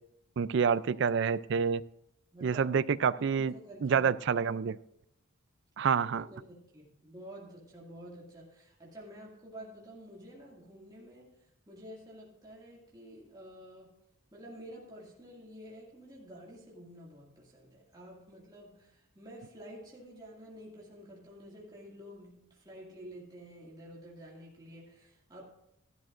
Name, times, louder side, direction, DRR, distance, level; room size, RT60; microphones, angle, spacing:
voice 1, 0.4-1.8 2.4-3.5 3.8-4.8 5.8-6.3, right 6 dB, 55° right, 16 dB, 0.3 m, -28 dB
voice 2, 2.3-2.7 3.2-4.1 5.9-13.9 14.3-25.4, equal, 20° right, -5 dB, 2.1 m, -50 dB
13.5 x 12.0 x 2.5 m, 0.81 s
head